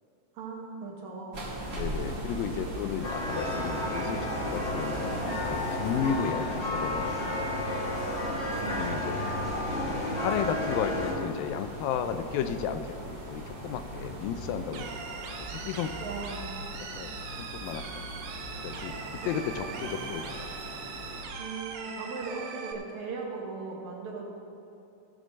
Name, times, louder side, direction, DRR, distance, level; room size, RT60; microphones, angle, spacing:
voice 1, 0.3-1.4 8.5-9.4 16.0-16.6 19.7-20.0 21.4-24.3, right 4 dB, 60° right, -1 dB, 2.4 m, -39 dB
sound 1, 1.3-21.2, right 1 dB, 30° right, 1.7 m, -40 dB
voice 2, 1.7-7.5 8.7-9.2 9.8-14.9 15.4-15.9 17.0-17.1 17.4-18.1 18.6-20.5, left 8 dB, 80° left, 9 dB, 2.3 m, -34 dB
sound 2, 3.0-11.1, left 1 dB, 55° left, 0.7 m, -32 dB
sound 3, 14.7-22.7, right 5 dB, 80° right, 2.8 m, -41 dB
16.0 x 5.9 x 6.3 m, 2.8 s
omnidirectional pair, 4.2 m